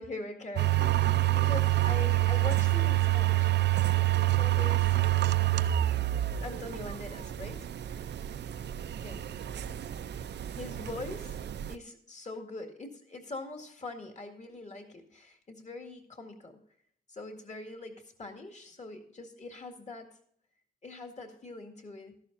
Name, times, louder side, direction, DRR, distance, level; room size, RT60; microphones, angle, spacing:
voice 1, 0.0-3.5 4.3-5.5 6.4-7.7 9.0-9.3 10.6-11.4 11.7-16.6 17.1-20.2 20.8-22.2, left 2 dB, 40° left, 4 dB, 2.0 m, -43 dB
sound 1, 0.6-11.7, right 15 dB, 75° right, 0.5 m, -27 dB
13.5 x 11.0 x 2.6 m, 0.64 s
wide cardioid pair, 125°, 18 cm